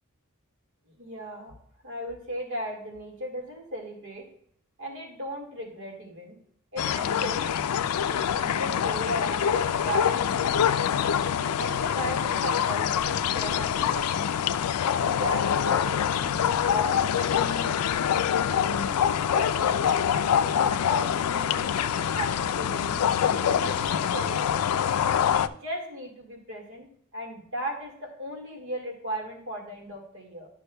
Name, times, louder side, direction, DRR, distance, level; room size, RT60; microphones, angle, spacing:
voice 1, 1.0-1.5 1.8-4.3 4.8-6.4 6.7-7.6 8.1-10.7 11.4-14.3 15.0-17.8 18.3-20.4 20.8-23.0 23.3-24.8 25.3-26.9 27.1-30.5, equal, 60° right, 1 dB, 1.9 m, -37 dB
sound 1, 6.8-25.5, left 8 dB, 90° left, 0.4 m, -25 dB
11.5 x 6.0 x 2.2 m, 0.65 s
head